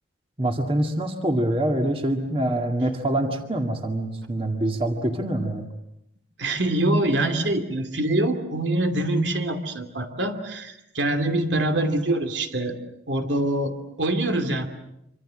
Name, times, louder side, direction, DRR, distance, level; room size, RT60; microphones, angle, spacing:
voice 1, 0.4-5.7, right 1 dB, 30° right, 5 dB, 2.0 m, -25 dB
voice 2, 6.4-12.8 13.1-14.7, right 1 dB, 75° right, 7 dB, 2.7 m, -24 dB
26.5 x 25.5 x 7.7 m, 0.82 s
head